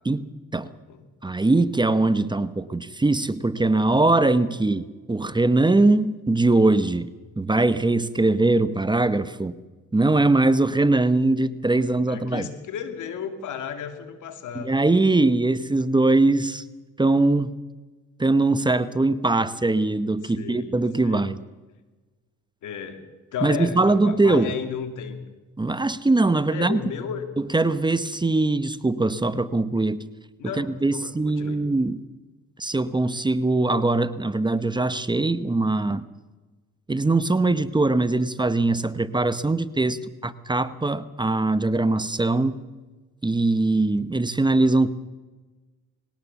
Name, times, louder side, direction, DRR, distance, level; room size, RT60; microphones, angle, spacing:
voice 1, 1.2-7.1 7.4-9.6 9.9-12.5 14.6-16.6 17.0-17.5 18.2-21.4 23.4-24.5 25.6-26.8 27.5-30.0 30.6-32.0 32.6-36.0 36.9-42.6 43.2-44.9, right 2 dB, 15° right, 14 dB, 0.9 m, -21 dB
voice 2, 12.0-14.7 20.2-20.7 21.0-21.4 22.6-23.0 23.3-25.2 26.5-27.2 30.4-31.6, left 7 dB, 80° left, 8 dB, 2.7 m, -34 dB
20.5 x 18.0 x 7.1 m, 1.2 s
cardioid pair, 90°, 30 cm